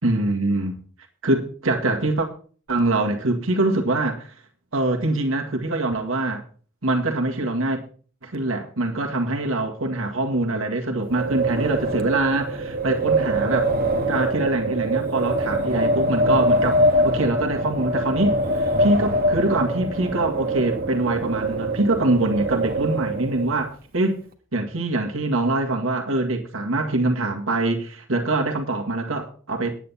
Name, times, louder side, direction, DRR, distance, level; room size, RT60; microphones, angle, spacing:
voice 1, 0.0-0.8 1.2-2.3 2.7-4.3 4.7-6.4 6.8-7.8 8.2-13.7 14.1-24.2 24.5-29.7, right 2 dB, 75° right, 1.9 m, -24 dB
Wind, 11.0-23.6, right 1 dB, 45° right, 1.6 m, -23 dB
10.5 x 9.1 x 5.7 m
head